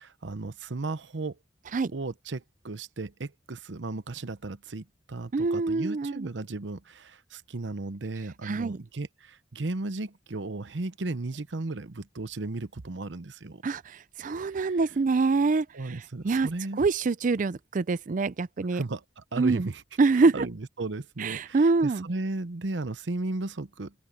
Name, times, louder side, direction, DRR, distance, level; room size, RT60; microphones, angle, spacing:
voice 1, 0.0-1.4 1.9-13.6 14.5-14.8 15.7-16.8 18.7-19.8 20.1-23.9, right 2 dB, 85° right, 0.9 m, -35 dB
voice 2, 5.3-6.3 8.4-8.8 13.6-16.5 16.8-18.8 19.4-19.7 20.0-20.5 21.2-22.1, right 3 dB, 45° right, 0.4 m, -25 dB
open air
head